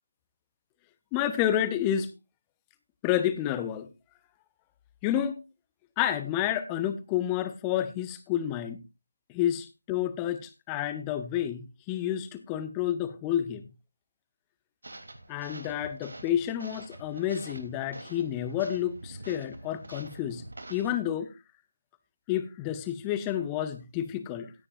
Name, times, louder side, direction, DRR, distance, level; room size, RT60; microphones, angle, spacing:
voice 1, 1.1-2.1 3.0-3.9 5.0-5.4 6.0-8.8 9.3-13.6 15.3-20.4 20.7-21.3 22.3-24.5, left 11 dB, 10° left, 12 dB, 0.7 m, -30 dB
sound 1, 14.8-20.9, right 2 dB, 60° right, 3.1 m, -46 dB
16.5 x 9.7 x 2.5 m, 0.25 s
figure-of-eight pair, 160°, 0 cm